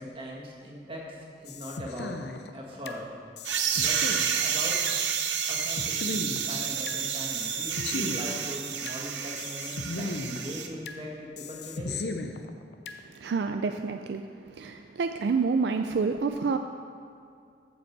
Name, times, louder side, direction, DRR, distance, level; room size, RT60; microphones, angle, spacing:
voice 1, 0.0-2.2 2.5-3.1 3.7-4.0 4.4-4.8 5.5-12.0, equal, 30° right, -3 dB, 1.8 m, -40 dB
sound 1, 1.5-3.0 3.4-5.0 5.4-7.0 7.4-9.0 9.4-11.0 11.4-13.0, left 3 dB, 70° left, 0.6 m, -37 dB
sound 2, 3.4-10.7, right 7 dB, 90° right, 0.7 m, -30 dB
voice 2, 13.1-16.6, right 4 dB, 70° right, 6 dB, 0.4 m, -28 dB
14.5 x 5.2 x 4.7 m, 2.4 s
head